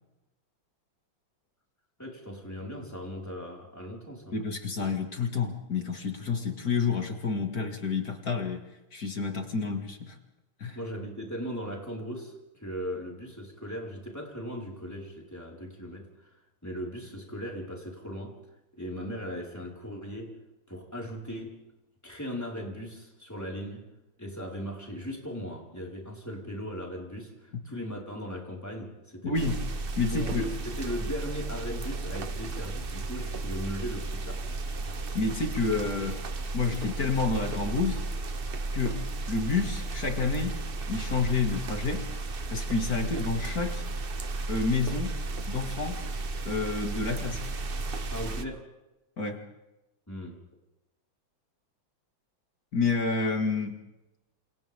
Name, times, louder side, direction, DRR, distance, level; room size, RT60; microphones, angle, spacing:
voice 1, 2.0-4.4 10.7-16.3 16.6-18.4 18.7-20.4 20.7-21.6 22.0-23.9 24.2-29.5 30.1-34.5 48.1-48.7 50.1-50.4, equal, 10° left, -2 dB, 4.8 m, -38 dB
voice 2, 4.3-8.6 8.9-10.2 10.6-10.8 29.2-29.5 30.0-30.5 35.1-36.2 36.5-38.0 38.7-42.1 42.5-43.8 44.5-45.2 45.5-46.0 46.4-47.4 49.2-49.4 52.7-53.8, left 4 dB, 45° left, 4 dB, 2.6 m, -29 dB
sound 1, 29.3-48.4, right 3 dB, 40° right, 0.9 m, -34 dB
28.5 x 28.0 x 3.6 m, 0.97 s
omnidirectional pair, 2.2 m